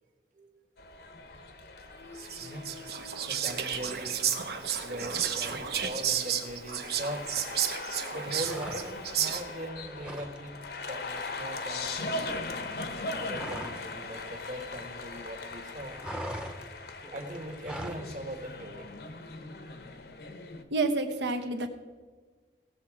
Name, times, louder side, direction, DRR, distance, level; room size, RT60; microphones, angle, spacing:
sound 1, 0.8-20.6, left 3 dB, 60° left, 0.9 m, -40 dB
voice 1, 1.8-2.6 3.3-4.2 4.7-7.6 8.1-12.6 13.1-16.0 17.1-18.9, right 1 dB, 45° right, 4 dB, 1.4 m, -41 dB
Whispering, 2.2-9.7, right 8 dB, 60° right, 0.9 m, -32 dB
sound 2, 8.4-9.2 9.5-10.4 10.6-10.9 11.1-13.9 14.2-15.3 15.5-18.1, equal, 5° right, 0.8 m, -41 dB
voice 2, 20.7-21.7, right 2 dB, 80° right, 6 dB, 1.2 m, -28 dB
17.5 x 7.2 x 4.8 m, 1.4 s
head